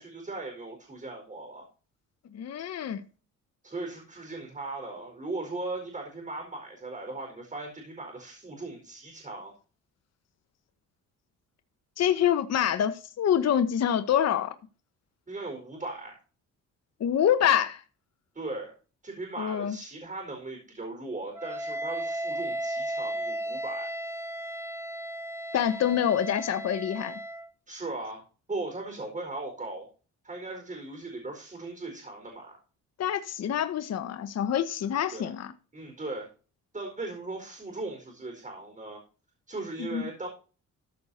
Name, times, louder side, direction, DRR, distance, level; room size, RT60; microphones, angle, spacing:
voice 1, 0.0-1.6 3.6-9.5 15.3-16.2 18.3-18.7 19.0-23.9 27.7-28.2 28.5-29.9 30.2-32.6 35.1-35.3 35.7-36.3 36.7-39.0 39.5-40.3, right 2 dB, 25° right, 4.8 m, -38 dB
voice 2, 2.3-3.0 12.0-14.5 17.0-17.8 19.4-19.8 25.5-27.2 33.0-35.5 39.8-40.0, left 9 dB, 55° left, 1.1 m, -26 dB
Wind instrument woodwind instrument, 21.4-27.5, right 1 dB, 10° right, 0.8 m, -35 dB
14.0 x 6.5 x 4.3 m
cardioid pair, 90°, 30 cm